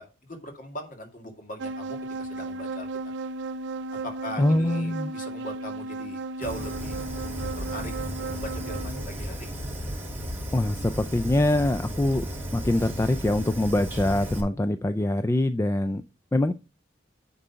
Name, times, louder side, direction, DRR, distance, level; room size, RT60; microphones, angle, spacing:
voice 1, 0.0-2.9 4.0-7.0 7.6-9.5, equal, 45° left, 3 dB, 2.2 m, -40 dB
sound 1, 1.6-9.1, right 3 dB, 70° right, 0.5 m, -35 dB
voice 2, 4.4-5.1 10.5-12.3 12.5-16.0 16.3-16.5, left 1 dB, 15° left, 11 dB, 0.3 m, -24 dB
Fire, 6.4-14.4, equal, 10° right, 2.7 m, -34 dB
9.9 x 4.0 x 5.6 m, 0.30 s
head